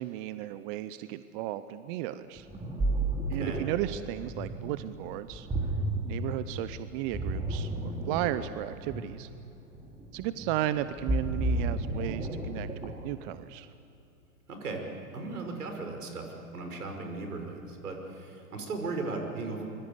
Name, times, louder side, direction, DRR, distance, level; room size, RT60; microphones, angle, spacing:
voice 1, 0.0-2.5 3.3-5.5 6.1-9.3 10.1-13.7, right 14 dB, 35° right, 13 dB, 0.8 m, -34 dB
Ocean, 2.4-13.1, right 1 dB, 15° right, 3.2 m, -33 dB
voice 2, 14.5-14.8 15.1-19.6, right 3 dB, 80° right, 4 dB, 5.7 m, -37 dB
25.5 x 22.5 x 8.3 m, 2.7 s
hypercardioid pair, 115°, 45 cm